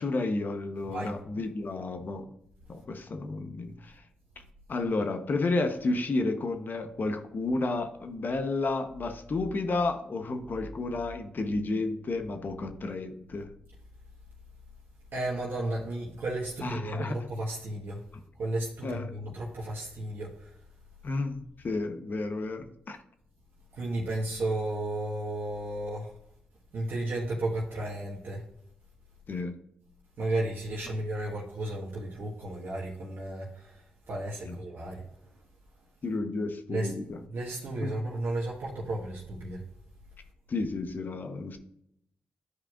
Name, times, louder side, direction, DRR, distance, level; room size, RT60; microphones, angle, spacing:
voice 1, 0.0-2.3 2.7-4.0 4.7-13.5 16.6-17.2 18.8-19.1 21.0-23.0 29.3-29.5 34.4-34.5 36.0-37.2 37.8-37.9 40.5-41.6, left 3 dB, 55° left, 7 dB, 0.9 m, -31 dB
voice 2, 15.1-18.0 18.4-20.3 23.8-26.1 26.7-28.4 30.2-33.7 34.1-35.0 36.7-36.9 37.3-39.6, right 1 dB, 75° right, -5 dB, 1.5 m, -33 dB
11.5 x 4.8 x 2.5 m, 0.75 s
cardioid pair, 55°, 4 cm